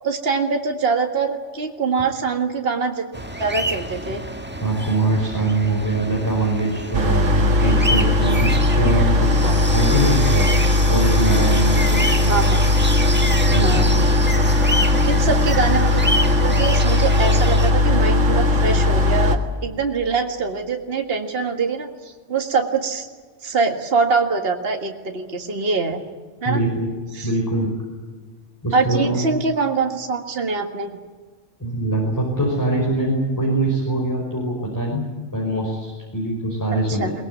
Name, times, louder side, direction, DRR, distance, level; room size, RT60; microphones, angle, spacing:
voice 1, 0.0-3.1 3.4-4.2 9.4-9.5 12.3-12.6 13.6-13.9 15.0-16.0 16.4-23.1 23.4-26.0 26.4-26.6 27.1-27.3 28.7-30.9 36.9-37.1, right 4 dB, 50° right, 4 dB, 2.1 m, -23 dB
sound 1, 3.1-17.7, equal, 10° right, 1.4 m, -28 dB
voice 2, 4.6-10.5 10.9-12.0 13.5-13.8 26.4-26.9 27.2-27.7 28.6-29.2 31.6-35.0 35.3-37.1, right 2 dB, 15° left, -2 dB, 5.0 m, -23 dB
sound 2, 6.9-19.4, left 2 dB, 85° right, 2.3 m, -18 dB
22.0 x 20.5 x 9.3 m, 1.5 s
omnidirectional pair, 1.3 m